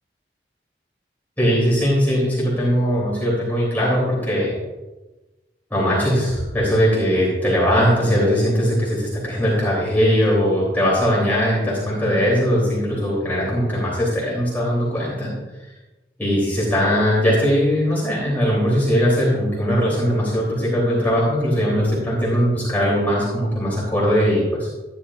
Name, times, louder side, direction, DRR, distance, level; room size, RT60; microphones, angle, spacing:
voice 1, 1.4-4.6 5.7-15.3 16.2-24.7, equal, 10° left, -7 dB, 3.0 m, -20 dB
14.0 x 10.0 x 2.5 m, 1.1 s
head